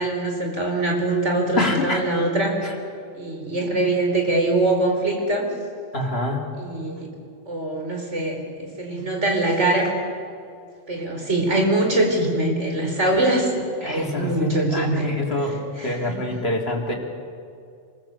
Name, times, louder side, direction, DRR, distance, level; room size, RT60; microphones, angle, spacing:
voice 1, 0.0-2.6 3.1-5.5 6.6-7.1 7.5-9.9 10.9-13.5 13.8-15.1 15.4-16.4, right 2 dB, 80° right, 1 dB, 4.6 m, -23 dB
voice 2, 1.6-2.0 2.6-2.7 5.9-6.5 13.8-16.9, left 2 dB, 60° left, 0 dB, 3.6 m, -26 dB
26.5 x 20.5 x 8.2 m, 2.4 s
omnidirectional pair, 1.2 m